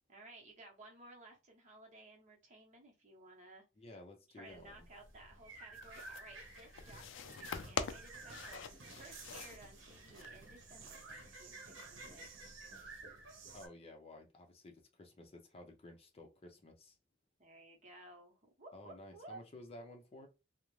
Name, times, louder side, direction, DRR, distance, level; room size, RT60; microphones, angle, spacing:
voice 1, 0.1-3.6 4.3-12.5 17.4-19.4, right 2 dB, 40° right, 0.9 m, -57 dB
voice 2, 3.8-4.9 13.5-17.0 18.7-20.3, left 1 dB, 30° left, 0.5 m, -54 dB
sound 1, 4.5-13.7, right 3 dB, 80° right, 0.8 m, -53 dB
sound 2, 5.7-10.7, left 6 dB, 80° left, 0.4 m, -45 dB
2.4 x 2.0 x 3.0 m
head